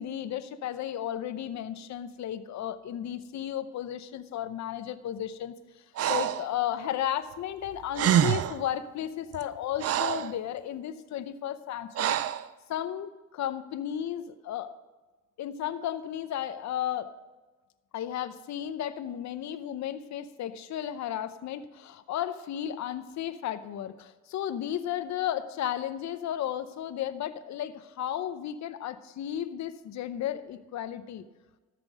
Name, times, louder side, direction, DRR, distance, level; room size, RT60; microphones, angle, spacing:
voice 1, 0.0-12.2 12.7-14.7 15.4-17.1 17.9-31.2, left 10 dB, 65° left, 11 dB, 0.8 m, -34 dB
Breathing, 6.0-6.5 7.7-7.8 7.9-8.6 9.3-10.4 11.9-12.5, right 10 dB, 55° right, 0.5 m, -26 dB
13.5 x 6.0 x 6.1 m, 1.2 s
cardioid pair, 90°, 30 cm